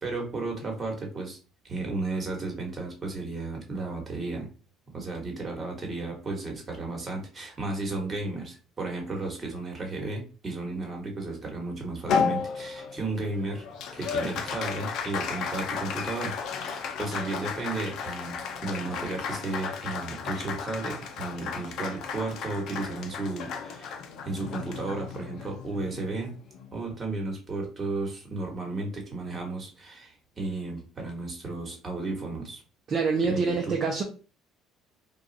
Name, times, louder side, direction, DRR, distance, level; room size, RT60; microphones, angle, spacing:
voice 1, 0.0-1.4 1.6-4.5 4.9-13.6 13.9-23.9 24.2-26.4 26.7-32.6 33.2-33.8, right 3 dB, 30° right, 2 dB, 1.4 m, -34 dB
Applause, 12.1-26.7, left 6 dB, 65° left, 0.5 m, -34 dB
voice 2, 32.9-34.0, right 4 dB, 45° right, 0 dB, 0.7 m, -26 dB
2.4 x 2.4 x 4.0 m, 0.36 s
supercardioid pair, 90°, 0 cm